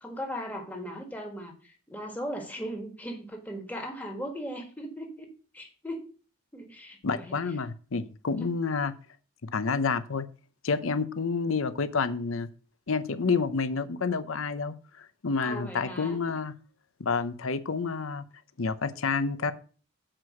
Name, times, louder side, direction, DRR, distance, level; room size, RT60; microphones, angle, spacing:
voice 1, 0.0-5.3 5.5-6.1 6.5-7.4 8.4-8.5 15.4-16.2, equal, 10° left, 2 dB, 1.5 m, -38 dB
voice 2, 7.0-8.9 9.4-10.3 10.6-12.5 12.9-16.5 17.0-18.2 18.6-19.5, left 4 dB, 80° left, 12 dB, 0.7 m, -29 dB
7.5 x 4.8 x 6.2 m, 0.39 s
head